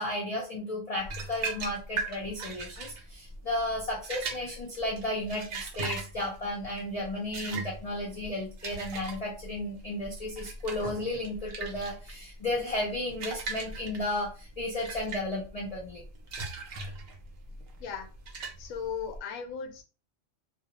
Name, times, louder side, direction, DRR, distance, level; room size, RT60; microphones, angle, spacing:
voice 1, 0.0-16.0, left 1 dB, 50° left, -3 dB, 0.4 m, -33 dB
sound 1, 1.0-19.2, right 3 dB, 60° right, 0.7 m, -39 dB
voice 2, 18.6-19.8, left 6 dB, 85° left, 6 dB, 1.0 m, -36 dB
2.3 x 2.0 x 2.8 m, 0.34 s
omnidirectional pair, 1.3 m